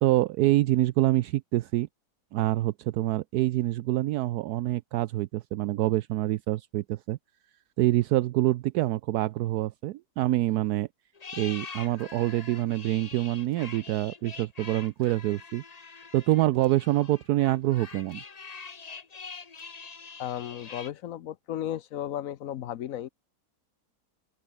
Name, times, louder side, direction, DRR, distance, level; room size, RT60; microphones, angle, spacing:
voice 1, 0.0-1.9 2.3-7.2 7.8-10.9 11.3-15.6 16.1-18.2, right 16 dB, 75° right, 1.1 m, -26 dB
sound 1, 11.2-20.9, left 5 dB, 30° left, 0.9 m, -44 dB
voice 2, 20.2-23.1, left 11 dB, 60° left, 1.0 m, -34 dB
open air
omnidirectional pair, 1.8 m